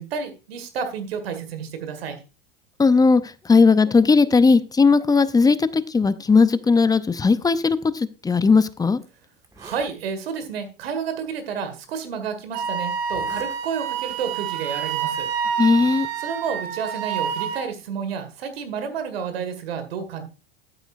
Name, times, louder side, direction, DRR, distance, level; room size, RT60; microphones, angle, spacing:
voice 1, 0.0-2.2 9.6-15.3 16.2-20.2, right 6 dB, 80° right, 1.9 m, -30 dB
voice 2, 2.8-9.0 15.6-16.1, left 4 dB, 15° left, 0.6 m, -17 dB
Zipper (clothing), 8.4-8.5 9.0-9.1 9.4-9.9 10.8-10.9 11.8-11.9 13.0-13.5 13.9-14.2, right 2 dB, 10° right, 1.9 m, -46 dB
Wind instrument woodwind instrument, 12.5-17.7, right 7 dB, 60° right, 1.2 m, -28 dB
11.5 x 8.8 x 2.5 m
hypercardioid pair, 85°, 30 cm